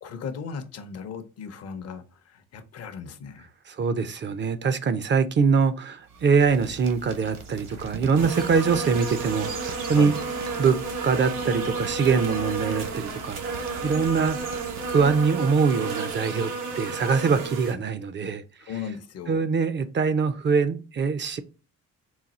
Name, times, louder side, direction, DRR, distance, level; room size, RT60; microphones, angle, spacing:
voice 1, 0.0-3.5 9.9-10.2 18.6-19.4, left 6 dB, 55° left, 0.7 m, -37 dB
voice 2, 3.7-10.1 10.6-10.8 11.0-14.4 14.9-18.4 19.3-21.4, right 5 dB, 40° right, 0.5 m, -23 dB
sound 1, 6.0-15.4, right 4 dB, 65° right, 1.0 m, -42 dB
sound 2, 8.1-17.7, right 4 dB, 90° right, 0.9 m, -31 dB
4.0 x 2.3 x 4.1 m
cardioid pair, 90°, 30 cm